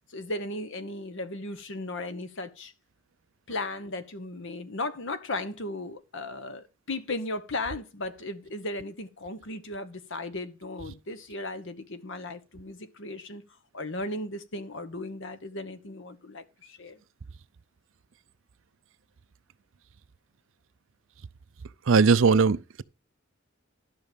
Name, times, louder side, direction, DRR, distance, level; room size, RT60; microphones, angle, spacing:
voice 1, 0.1-2.7 3.5-13.4 13.7-17.0, left 2 dB, 60° left, 1.2 m, -36 dB
voice 2, 21.9-22.8, right 5 dB, 65° right, 0.5 m, -20 dB
12.0 x 6.2 x 5.2 m
head